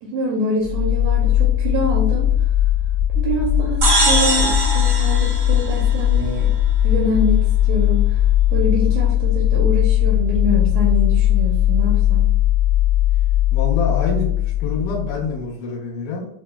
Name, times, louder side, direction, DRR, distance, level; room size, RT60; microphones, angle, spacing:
voice 1, 0.0-2.3 3.1-6.5 6.8-8.2 8.5-12.3, equal, 80° right, -2 dB, 1.6 m, -25 dB
sound 1, 0.6-15.4, left 12 dB, 45° left, 0.8 m, -18 dB
sound 2, 3.8-6.4, right 2 dB, 65° right, 1.0 m, -21 dB
voice 2, 13.5-14.3 14.6-16.3, left 4 dB, 75° left, -5 dB, 2.1 m, -26 dB
5.4 x 2.0 x 2.2 m, 0.73 s
omnidirectional pair, 3.6 m